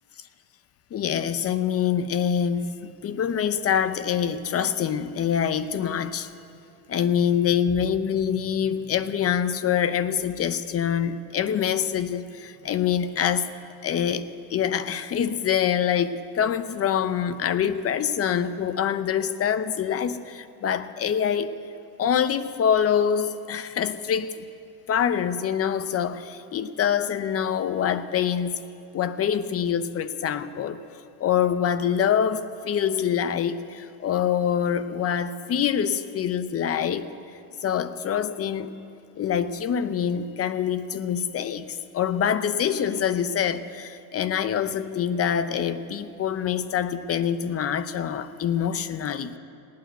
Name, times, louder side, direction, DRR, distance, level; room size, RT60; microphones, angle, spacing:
voice 1, 0.9-6.3 6.9-13.5 13.8-21.5 22.0-24.4 24.9-28.6 28.9-30.8 31.2-37.1 37.6-38.7 39.2-49.4, left 8 dB, 30° left, 13 dB, 0.7 m, -25 dB
18.0 x 9.5 x 7.9 m, 2.6 s
cardioid pair, 120°, 46 cm